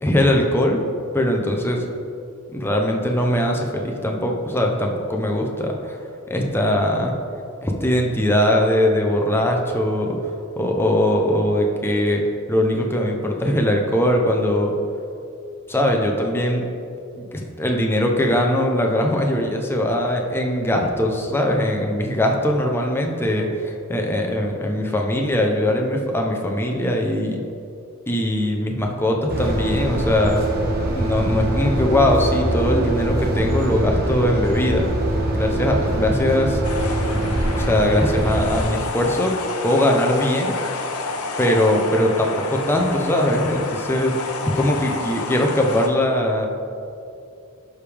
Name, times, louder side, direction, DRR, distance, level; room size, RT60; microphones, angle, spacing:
voice 1, 0.0-0.8 1.1-1.8 2.5-6.0 6.3-7.1 7.6-10.2 10.6-12.2 12.5-14.7 15.7-16.6 17.2-27.4 28.1-30.4 31.0-34.9 35.3-37.1 37.6-39.3 39.6-40.5 41.4-44.2 44.4-46.5, left 1 dB, 10° left, 1 dB, 0.7 m, -21 dB
sound 1, 29.3-38.6, right 1 dB, 45° right, 1.2 m, -23 dB
sound 2, 36.6-45.9, left 3 dB, 80° left, 0.8 m, -30 dB
12.0 x 5.1 x 3.5 m, 2.6 s
head